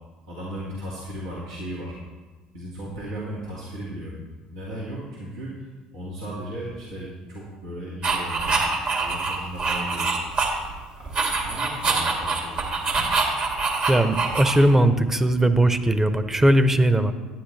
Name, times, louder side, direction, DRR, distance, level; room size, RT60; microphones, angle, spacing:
voice 1, 0.3-2.0 2.5-4.1 4.5-10.5 10.9-12.7, equal, 85° right, -7 dB, 2.1 m, -36 dB
fast pencil writing, 8.0-10.8 11.1-14.8, right 4 dB, 50° right, 2.3 m, -25 dB
voice 2, 13.9-17.1, right 1 dB, 15° right, 10 dB, 0.8 m, -19 dB
11.5 x 9.6 x 3.3 m, 1.3 s
hypercardioid pair, 65°, 3 cm